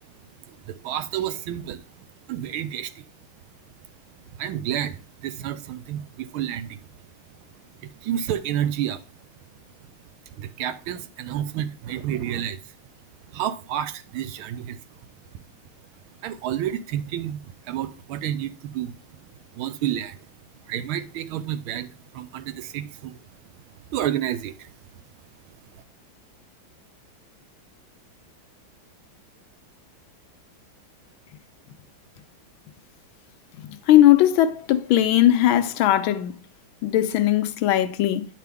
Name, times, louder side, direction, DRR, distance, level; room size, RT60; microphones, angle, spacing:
voice 1, 0.5-1.8 2.3-3.0 4.4-6.8 7.8-9.0 10.4-12.7 13.3-14.8 15.3-15.4 16.2-18.9 19.5-20.2 20.7-23.2 23.9-24.7 25.7-25.8, right 11 dB, 80° right, 1.5 m, -30 dB
voice 2, 33.9-36.3 36.8-38.3, left 12 dB, 80° left, 1.4 m, -18 dB
9.2 x 5.8 x 3.5 m
omnidirectional pair, 2.3 m